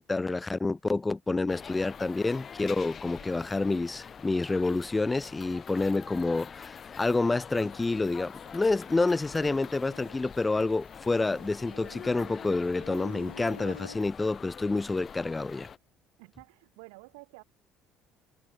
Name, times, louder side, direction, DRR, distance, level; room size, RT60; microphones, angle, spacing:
voice 1, 0.0-15.7, left 3 dB, 20° left, 0.3 m, -28 dB
sound 1, 1.5-15.8, left 7 dB, 40° left, 1.7 m, -45 dB
Insect, 7.6-14.0, left 5 dB, 90° left, 1.1 m, -50 dB
voice 2, 16.2-17.4, right 30 dB, 70° right, 3.3 m, -51 dB
figure-of-eight pair, 55°, 0 cm